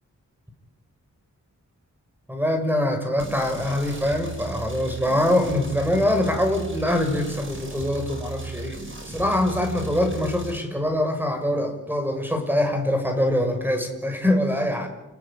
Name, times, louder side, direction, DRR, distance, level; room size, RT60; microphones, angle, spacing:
voice 1, 2.3-8.8 9.0-14.9, left 1 dB, 5° right, 5 dB, 6.2 m, -24 dB
sound 1, 3.2-10.6, right 4 dB, 40° right, 4.9 m, -36 dB
29.5 x 19.5 x 8.7 m, 1.0 s
wide cardioid pair, 90°, 32 cm